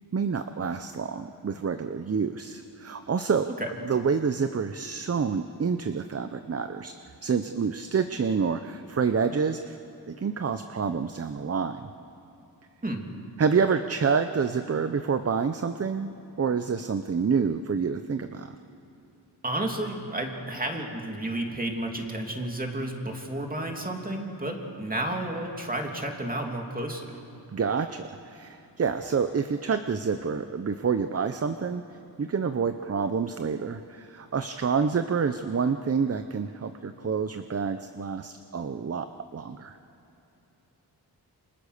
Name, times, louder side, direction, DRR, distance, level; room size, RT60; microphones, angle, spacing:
voice 1, 0.0-3.5 3.8-6.9 7.2-9.8 10.1-11.9 13.4-18.5 27.5-39.1 39.3-39.8, right 5 dB, 35° right, 9 dB, 0.7 m, -28 dB
voice 2, 19.4-27.2, right 1 dB, 20° right, 2 dB, 2.9 m, -31 dB
28.5 x 25.5 x 6.6 m, 2.8 s
wide cardioid pair, 120°, 41 cm